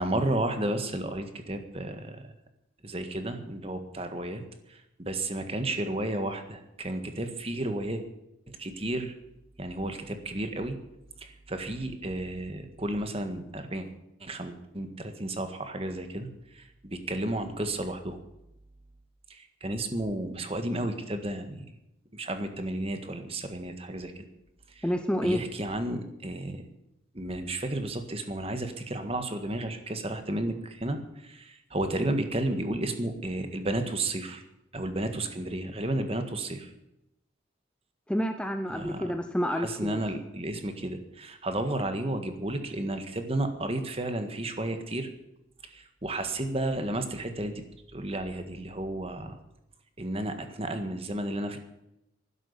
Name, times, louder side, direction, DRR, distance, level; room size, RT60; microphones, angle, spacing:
voice 1, 0.0-2.3 2.8-4.4 4.7-8.0 8.5-9.1 9.6-10.8 11.2-13.9 14.2-18.2 19.3-21.7 22.1-24.2 24.7-24.9 25.2-26.7 27.1-34.4 34.7-36.7 38.7-39.1 39.5-45.1 45.6-47.6 47.9-49.4 50.0-51.6, right 1 dB, 30° right, 7 dB, 1.6 m, -32 dB
voice 2, 24.8-25.4 38.1-40.0, equal, 5° left, 7 dB, 0.7 m, -29 dB
12.5 x 11.0 x 8.2 m, 0.88 s
head